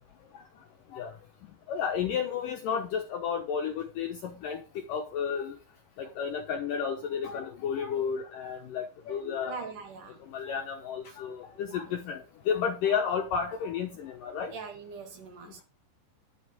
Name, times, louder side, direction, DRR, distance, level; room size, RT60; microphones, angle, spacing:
voice 1, 1.7-5.6 6.0-9.6 10.2-14.5, left 7 dB, 70° left, 2.1 m, -32 dB
voice 2, 9.5-10.2 11.9-12.0 14.5-15.6, right 5 dB, 55° right, 2.9 m, -42 dB
11.5 x 8.5 x 5.0 m
omnidirectional pair, 5.1 m